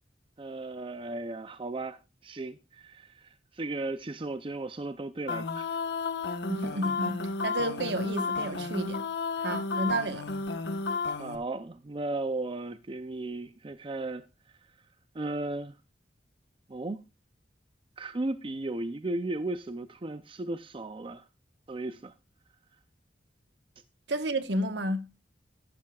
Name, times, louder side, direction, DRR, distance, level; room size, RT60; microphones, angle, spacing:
voice 1, 0.4-5.7 11.2-14.3 15.1-15.7 16.7-17.0 18.0-21.2 21.7-22.1, right 2 dB, 30° right, 0.5 m, -35 dB
sound 1, 5.3-11.4, left 4 dB, 65° left, 1.2 m, -32 dB
voice 2, 6.5-9.0 9.4-10.3 24.1-25.1, right 1 dB, 65° right, 1.2 m, -31 dB
13.5 x 12.0 x 2.4 m
head